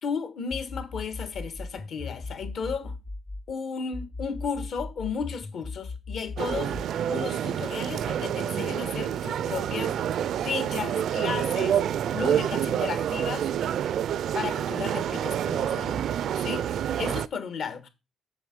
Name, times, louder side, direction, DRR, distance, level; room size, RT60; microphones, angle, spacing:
voice 1, 0.0-2.9 3.5-6.8 7.1-9.9 10.4-11.8 12.1-13.5 14.3-16.1 16.4-16.7 17.0-17.9, left 6 dB, 65° left, 1.5 m, -34 dB
sound 1, 0.5-3.5 3.9-6.9, left 3 dB, 35° left, 0.9 m, -38 dB
sound 2, 6.4-17.3, right 9 dB, 70° right, 0.4 m, -28 dB
7.0 x 6.3 x 5.2 m
cardioid pair, 90°, 0 cm